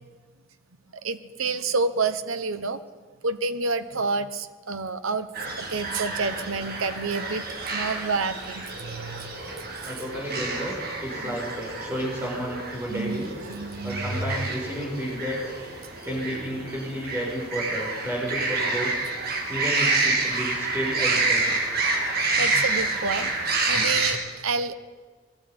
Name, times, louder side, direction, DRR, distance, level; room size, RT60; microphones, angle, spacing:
voice 1, 1.0-2.8 3.2-5.3 5.6-9.3 11.2-11.4 12.9-14.0 22.4-23.3 23.7-24.7, right 4 dB, 75° right, 11 dB, 1.0 m, -29 dB
sound 1, 5.3-24.1, right 3 dB, 45° right, 3.2 m, -28 dB
voice 2, 9.8-13.3 13.8-15.4 16.0-18.9 19.5-21.5 23.7-24.2, equal, 10° right, -2 dB, 6.2 m, -32 dB
21.0 x 12.5 x 9.7 m, 1.4 s
head